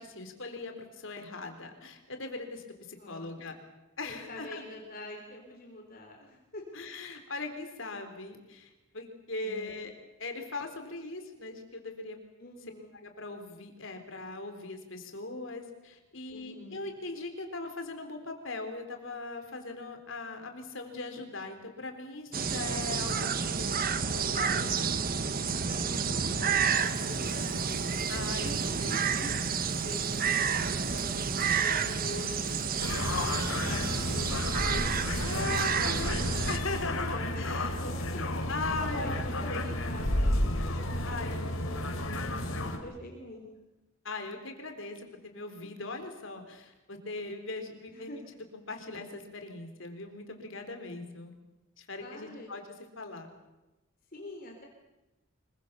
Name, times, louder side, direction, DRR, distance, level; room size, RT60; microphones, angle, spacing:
voice 1, 0.0-3.5 4.0-4.6 6.7-9.9 10.2-12.2 13.0-23.7 24.3-24.9 28.1-28.5 28.8-28.9 33.6-34.0 35.2-37.8 38.5-39.6 41.1-41.3 41.7-41.8 44.0-48.1 48.5-51.3 51.8-52.6 53.0-53.3, left 3 dB, 65° left, 5 dB, 3.9 m, -40 dB
voice 2, 3.0-3.3 4.0-6.6 9.4-9.8 12.4-12.9 16.3-16.9 24.1-24.6 25.6-27.8 28.3-36.5 37.1-38.4 38.9-40.4 40.6-43.6 47.9-48.3 52.0-52.5 54.1-54.7, left 1 dB, 45° left, 1 dB, 3.7 m, -45 dB
sound 1, 22.3-36.6, right 6 dB, 45° right, 1.2 m, -30 dB
Frying (food), 26.7-34.3, left 3 dB, 5° left, 8.0 m, -53 dB
sound 2, 32.8-42.8, left 1 dB, 80° left, 3.4 m, -32 dB
25.5 x 23.0 x 6.9 m, 1.0 s
head